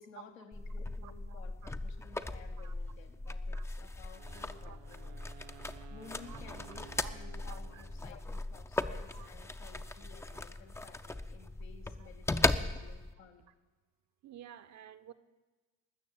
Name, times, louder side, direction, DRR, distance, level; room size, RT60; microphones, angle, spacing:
voice 1, 0.0-5.2 5.9-13.5, left 5 dB, 90° left, 3 dB, 1.4 m, -55 dB
sound 1, 0.5-13.1, left 2 dB, 5° left, 0.5 m, -38 dB
voice 2, 1.0-1.5 2.3-2.7 3.5-3.6 4.3-4.8 6.3-6.4 6.9-7.1 7.4-7.8 9.1-9.3 10.3-10.4 12.0-12.1 14.2-15.1, right 10 dB, 45° right, 12 dB, 0.9 m, -53 dB
Wind instrument woodwind instrument, 4.1-8.3, right 11 dB, 70° right, 0.7 m, -55 dB
13.5 x 6.5 x 8.5 m, 1.3 s
hypercardioid pair, 70°, 38 cm